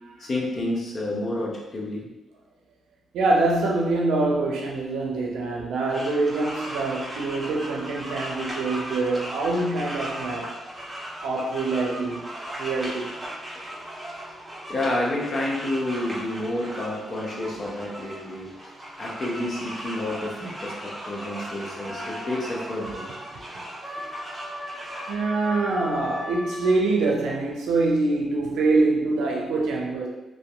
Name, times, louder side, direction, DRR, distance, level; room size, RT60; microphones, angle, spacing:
voice 1, 0.2-2.1 5.6-5.7 13.5-13.7 14.7-18.5 19.0-23.1, left 1 dB, 55° left, -3 dB, 0.7 m, -29 dB
voice 2, 3.1-10.5 11.2-12.3 12.6-13.1 23.3-23.4 25.1-30.1, right 3 dB, 80° right, -1 dB, 0.5 m, -25 dB
sound 1, 5.9-25.1, right 1 dB, 20° right, 1.0 m, -37 dB
sound 2, 21.9-22.5 23.8-26.8, left 1 dB, 10° left, 0.6 m, -37 dB
2.6 x 2.1 x 2.3 m, 1.0 s
supercardioid pair, 50°, 0 cm